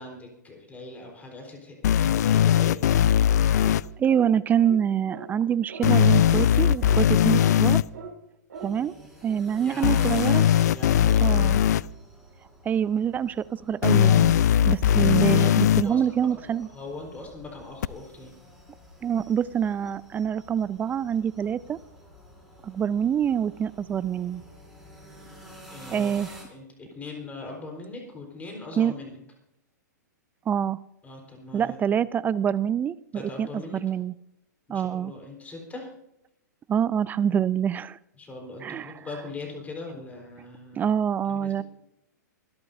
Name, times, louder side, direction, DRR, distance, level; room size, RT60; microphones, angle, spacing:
voice 1, 0.0-2.8 9.6-10.3 10.7-11.8 15.7-18.4 25.7-26.1 26.5-29.2 31.0-31.8 33.1-33.8 34.7-35.9 38.2-40.9 41.2-41.6, left 3 dB, 15° left, 1 dB, 4.1 m, -41 dB
sound 1, 1.8-3.8 5.8-7.8 9.8-11.8 13.8-15.8 17.8-17.9, left 10 dB, 65° left, 0.5 m, -19 dB
sound 2, 3.5-3.8 4.1-4.3 4.6-4.8 5.1-5.3 5.7-5.9 6.2-6.4 6.8-7.0 7.4-7.5 7.9-8.1 8.5-8.7, right 6 dB, 75° right, 6.2 m, -40 dB
voice 2, 4.0-7.8 8.6-8.9 9.2-10.5 11.2-11.6 12.6-14.4 14.6-16.7 19.0-21.8 22.6-24.4 25.9-26.3 28.8-28.9 30.5-30.8 31.5-33.5 33.7-34.1 34.7-35.1 36.7-38.0 38.6-38.9 40.8-41.6, right 8 dB, 15° right, 19 dB, 0.4 m, -26 dB
sound 3, 8.5-26.4, equal, ahead, 5.7 m, -49 dB
25.0 x 11.5 x 2.7 m, 0.82 s
hypercardioid pair, 115°, 10 cm